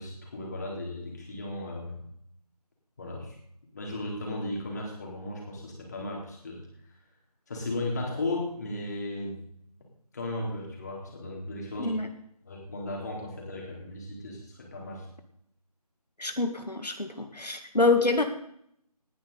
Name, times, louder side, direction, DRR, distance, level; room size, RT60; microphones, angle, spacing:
voice 1, 0.0-2.0 3.0-3.4 3.7-6.6 7.5-9.4 10.1-11.9 12.5-15.0, left 2 dB, 25° left, -1 dB, 3.7 m, -35 dB
voice 2, 11.8-12.1 16.2-18.2, left 3 dB, 85° left, 6 dB, 1.9 m, -26 dB
19.0 x 11.0 x 4.0 m, 0.71 s
figure-of-eight pair, 165°, 20 cm